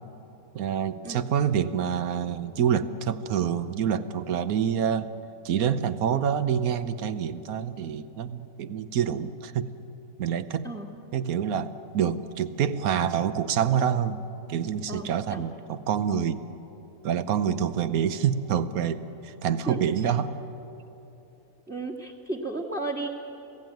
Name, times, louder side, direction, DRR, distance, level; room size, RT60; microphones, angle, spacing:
voice 1, 0.5-5.1 5.4-9.7 10.2-10.7 11.1-14.2 14.5-16.4 17.0-20.3, right 8 dB, 70° right, 13 dB, 1.3 m, -27 dB
voice 2, 14.9-15.4 19.7-20.1 21.7-23.1, right 2 dB, 5° right, -3 dB, 1.3 m, -34 dB
27.0 x 17.0 x 9.1 m, 3.0 s
omnidirectional pair, 1.6 m